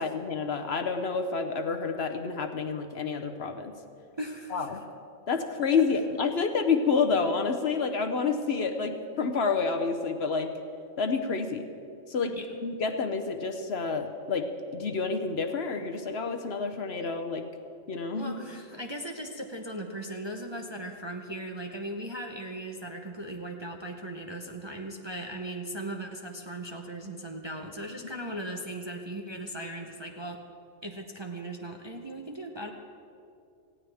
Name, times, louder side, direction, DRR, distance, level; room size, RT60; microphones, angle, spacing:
voice 1, 0.0-3.7 4.5-4.8 5.3-10.5 11.0-11.7 12.1-12.4 12.6-14.5 14.7-17.5 17.9-18.3, left 5 dB, 55° left, 6 dB, 1.0 m, -29 dB
voice 2, 4.2-4.8 5.6-5.8 12.3-12.5 18.1-30.4 30.8-32.7, right 1 dB, 25° right, 2 dB, 0.7 m, -38 dB
18.5 x 16.0 x 3.5 m, 2.5 s
omnidirectional pair, 1.4 m